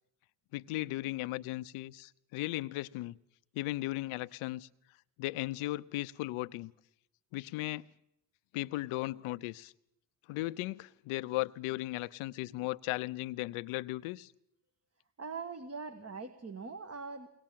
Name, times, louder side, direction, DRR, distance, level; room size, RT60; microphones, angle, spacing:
voice 1, 0.5-3.2 3.5-4.7 5.2-6.7 7.3-7.8 8.5-9.7 10.3-14.3, left 18 dB, 80° left, 0.8 m, -36 dB
voice 2, 15.2-17.3, right 4 dB, 30° right, 1.7 m, -42 dB
22.5 x 19.5 x 7.5 m
supercardioid pair, 65°, 49 cm